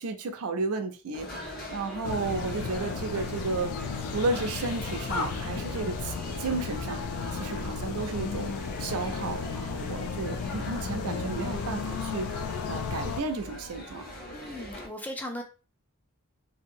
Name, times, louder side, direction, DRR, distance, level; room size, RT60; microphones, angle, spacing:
voice 1, 0.0-3.7 4.1-7.0 7.3-8.5 8.8-12.3 12.7-14.0, right 3 dB, 85° right, 6 dB, 0.5 m, -33 dB
sound 1, 1.1-14.9, left 1 dB, 40° left, 1.1 m, -41 dB
Car / Accelerating revving vroom, 1.5-7.7, left 2 dB, 60° left, 0.7 m, -55 dB
sound 2, 2.0-13.2, left 5 dB, 80° left, 0.3 m, -34 dB
voice 2, 14.3-15.4, left 1 dB, 5° left, 4 dB, 0.4 m, -37 dB
2.8 x 2.6 x 2.6 m, 0.34 s
head